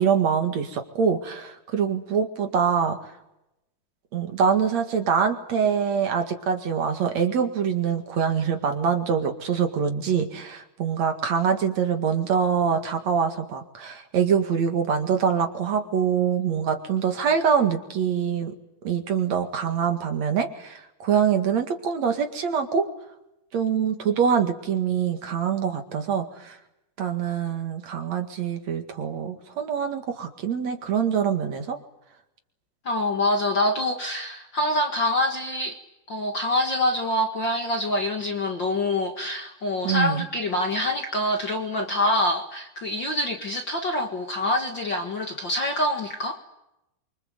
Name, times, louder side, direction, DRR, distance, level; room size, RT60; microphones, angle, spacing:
voice 1, 0.0-3.0 4.1-18.5 18.8-22.9 23.5-26.6 27.0-31.8 39.8-40.2, right 7 dB, 55° right, 5 dB, 3.0 m, -24 dB
voice 2, 32.9-35.8 36.1-46.4, left 1 dB, 40° left, 4 dB, 1.9 m, -25 dB
28.0 x 25.0 x 8.0 m, 0.88 s
omnidirectional pair, 4.0 m